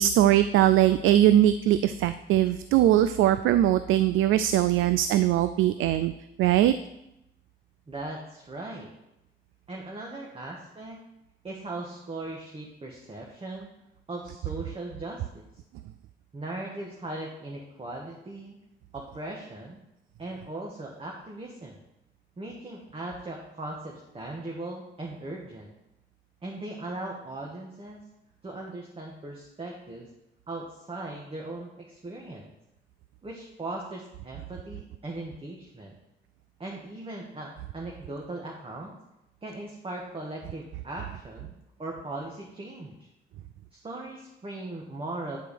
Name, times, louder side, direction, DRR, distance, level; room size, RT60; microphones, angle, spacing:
voice 1, 0.0-6.1 6.4-6.7, right 12 dB, 80° right, 12 dB, 0.4 m, -21 dB
voice 2, 7.9-8.9 9.7-11.0 11.4-13.7 14.1-15.5 16.3-18.6 18.9-19.8 20.2-21.8 22.4-25.7 26.4-28.0 28.4-30.1 30.5-32.5 33.2-35.9 36.6-39.0 39.4-41.5 41.8-43.1 43.7-45.4, right 2 dB, 30° right, -1 dB, 1.5 m, -38 dB
9.3 x 4.5 x 6.9 m, 0.88 s
cardioid pair, 90°, 20 cm